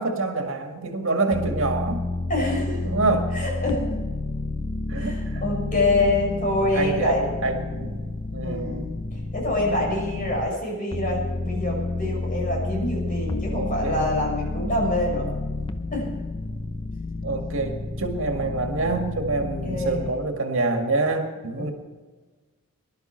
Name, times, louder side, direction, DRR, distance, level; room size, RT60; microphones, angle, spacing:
voice 1, 0.0-2.0 2.8-3.3 4.9-5.5 6.6-8.0 8.3-8.9 13.5-14.1 17.2-21.7, right 3 dB, 65° right, 4 dB, 2.0 m, -26 dB
sound 1, 1.3-10.5 10.9-20.1, left 2 dB, 25° left, 0.7 m, -30 dB
voice 2, 2.3-2.9 3.3-4.0 4.9-7.2 8.4-15.3 15.9-16.1 19.4-20.1 21.6-21.7, left 2 dB, 40° left, -1 dB, 6.1 m, -26 dB
20.0 x 12.0 x 4.5 m, 1.4 s
head